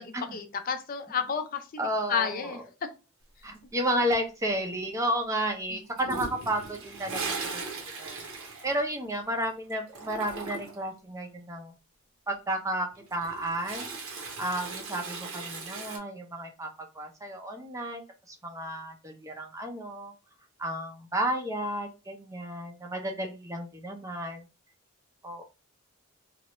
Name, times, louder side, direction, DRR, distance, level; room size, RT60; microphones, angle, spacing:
voice 1, 0.0-1.8 2.1-2.9 5.7-5.8, left 6 dB, 40° left, 7 dB, 0.4 m, -31 dB
voice 2, 1.8-2.5 3.4-7.6 8.0-8.2 8.6-11.7 12.3-18.0 18.3-20.1 20.6-24.4 25.2-25.4, right 1 dB, 15° right, 3 dB, 0.5 m, -32 dB
Toilet flush, 6.0-9.4 9.7-10.9 12.9-16.0, right 4 dB, 75° right, 1.0 m, -38 dB
3.1 x 2.4 x 3.0 m, 0.30 s
head